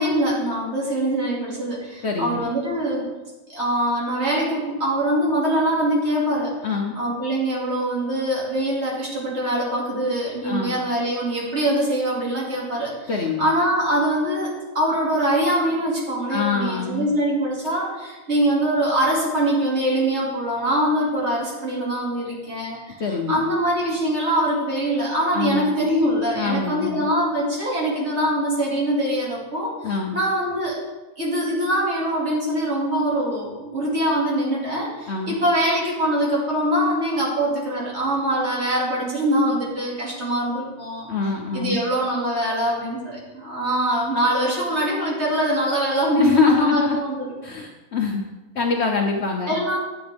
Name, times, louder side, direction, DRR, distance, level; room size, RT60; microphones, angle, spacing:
voice 1, 0.0-3.1 3.5-6.5 7.0-13.1 13.4-22.8 23.1-30.8 31.2-41.1 41.5-47.3 49.5-49.8, right 1 dB, 50° right, -5 dB, 2.7 m, -23 dB
voice 2, 2.0-2.6 6.6-6.9 10.4-10.8 13.1-13.4 16.3-17.1 23.0-23.4 25.3-25.7 26.4-27.1 29.8-30.2 35.1-35.4 41.1-41.8 46.2-47.0 47.4-48.2 48.6-49.5, left 5 dB, 55° left, 2 dB, 0.9 m, -24 dB
10.0 x 7.7 x 3.5 m, 1.2 s
omnidirectional pair, 1.5 m